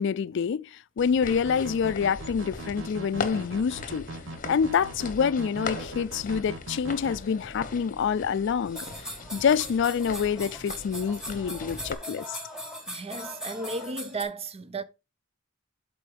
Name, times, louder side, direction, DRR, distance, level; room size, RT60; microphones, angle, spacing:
voice 1, 0.0-4.1 4.5-8.9 9.3-12.4, left 6 dB, 65° left, 0.4 m, -27 dB
sound 1, 1.0-11.9, left 4 dB, 45° left, 0.9 m, -40 dB
sound 2, 1.3-7.2, right 2 dB, 70° right, 1.3 m, -40 dB
sound 3, 8.7-14.2, equal, 5° right, 3.5 m, -39 dB
voice 2, 12.9-14.8, right 3 dB, 30° right, 0.7 m, -34 dB
12.5 x 4.5 x 3.4 m
head